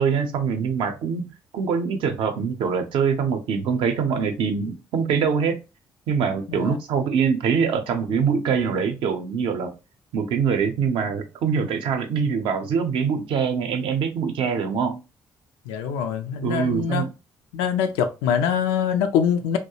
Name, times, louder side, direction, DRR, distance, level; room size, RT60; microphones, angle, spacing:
voice 1, 0.0-5.6 6.1-9.7 10.1-15.0 16.4-17.1, right 6 dB, 70° right, 0.5 m, -24 dB
voice 2, 15.7-17.1 17.5-19.6, left 8 dB, 85° left, 0.3 m, -24 dB
2.3 x 2.0 x 2.7 m
supercardioid pair, 55°, 9 cm